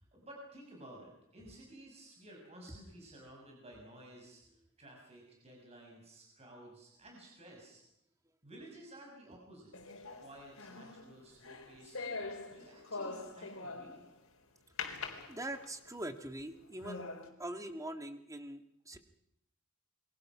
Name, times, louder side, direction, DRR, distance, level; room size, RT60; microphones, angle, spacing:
voice 1, 0.0-4.4 4.8-7.8 8.4-9.7 10.2-12.0 12.5-14.1, right 1 dB, 30° right, -1 dB, 6.2 m, -54 dB
sound 1, 9.7-14.1 14.8-15.9 16.4-16.5 16.8-17.3, left 3 dB, 70° left, 3.7 m, -43 dB
voice 2, 15.3-17.1 17.4-19.0, right 1 dB, 15° right, 8 dB, 1.7 m, -43 dB
28.5 x 23.0 x 6.1 m, 0.79 s
head